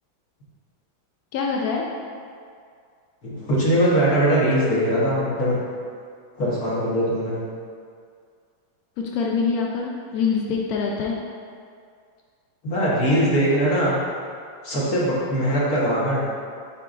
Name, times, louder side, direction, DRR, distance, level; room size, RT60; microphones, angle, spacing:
voice 1, 1.3-1.8 9.0-11.1, left 5 dB, 80° left, -1 dB, 0.8 m, -24 dB
voice 2, 3.2-5.6 6.4-7.4 12.6-14.0 14.6-16.2, equal, 50° left, -7 dB, 1.6 m, -21 dB
8.8 x 4.9 x 2.5 m, 2.2 s
omnidirectional pair, 2.2 m